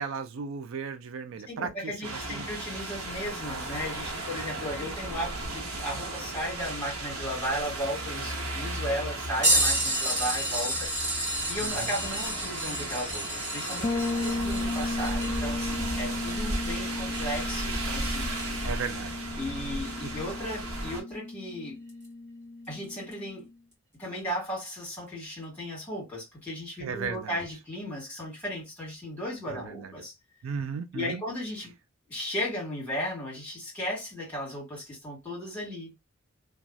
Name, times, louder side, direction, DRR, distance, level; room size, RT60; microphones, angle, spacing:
voice 1, 0.0-2.5 4.6-4.9 11.6-11.9 14.3-14.5 18.6-19.3 26.8-27.4 29.5-29.9 30.4-31.2, right 6 dB, 70° right, 0.4 m, -36 dB
voice 2, 1.5-10.9 11.5-18.4 19.4-21.8 22.7-23.5 24.0-30.1 30.5-30.6 30.9-31.7 32.1-35.9, equal, 5° left, 1.8 m, -35 dB
sound 1, 2.0-21.0, right 2 dB, 90° right, 1.0 m, -35 dB
sound 2, 9.4-17.6 18.4-18.5 20.8-20.9 21.9-22.1 23.1-23.2, right 1 dB, 35° right, 1.7 m, -30 dB
Bass guitar, 13.8-23.5, left 2 dB, 35° left, 0.3 m, -35 dB
3.0 x 2.3 x 2.6 m
head